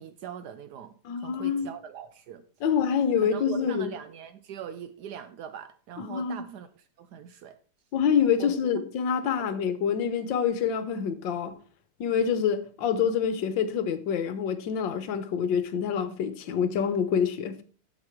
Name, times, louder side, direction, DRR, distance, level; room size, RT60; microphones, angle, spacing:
voice 1, 0.0-2.4 3.2-7.6 8.4-8.5 9.4-9.5, right 8 dB, 85° right, 0.9 m, -42 dB
voice 2, 1.0-1.7 2.6-3.9 6.0-6.5 7.9-11.5 12.0-17.6, left 7 dB, 65° left, 1.5 m, -26 dB
8.2 x 7.6 x 4.5 m
omnidirectional pair, 2.4 m